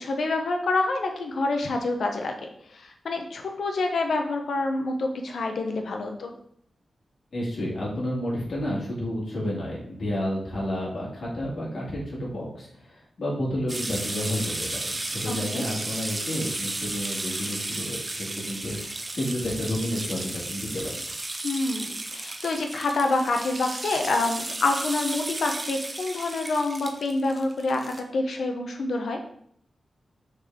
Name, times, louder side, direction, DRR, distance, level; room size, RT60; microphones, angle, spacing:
voice 1, 0.0-6.3 15.3-15.6 21.4-29.2, left 2 dB, 75° left, 4 dB, 1.0 m, -27 dB
voice 2, 7.3-21.0, left 1 dB, 60° left, -6 dB, 2.1 m, -31 dB
sound 1, 13.7-28.0, right 2 dB, 25° right, 0.7 m, -34 dB
6.4 x 4.2 x 3.6 m, 0.66 s
wide cardioid pair, 115°, 0 cm